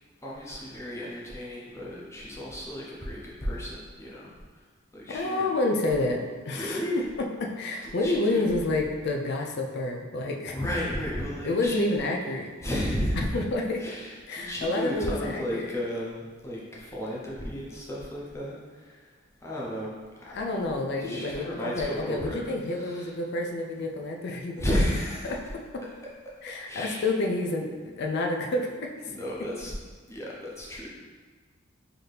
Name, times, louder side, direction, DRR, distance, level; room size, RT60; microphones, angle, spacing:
voice 1, 0.2-4.6 4.9-5.5 6.5-7.0 7.8-8.5 10.5-11.8 12.6-13.3 13.8-19.1 19.4-23.1 24.5-25.4 26.6-27.1 29.0-29.7 30.1-30.9, equal, 15° left, -5 dB, 0.7 m, -33 dB
voice 2, 5.1-7.0 7.4-10.6 11.4-12.5 13.3-13.8 14.3-15.7 20.3-24.5 25.2-25.4 25.7-25.8 26.4-27.7 28.0-28.9, left 2 dB, 55° left, 1 dB, 0.4 m, -29 dB
4.0 x 2.8 x 3.3 m, 1.5 s
head